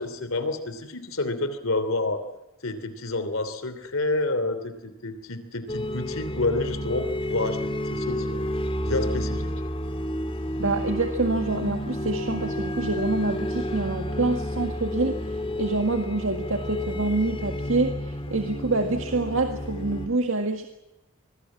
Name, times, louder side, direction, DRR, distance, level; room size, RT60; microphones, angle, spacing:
voice 1, 0.0-2.3 2.6-8.4 8.8-9.5, left 2 dB, 70° left, 10 dB, 3.1 m, -29 dB
sound 1, 5.7-20.1, equal, 25° left, 2.0 m, -30 dB
voice 2, 10.6-20.6, right 3 dB, 65° right, 5 dB, 1.9 m, -26 dB
26.0 x 21.0 x 7.5 m, 0.93 s
head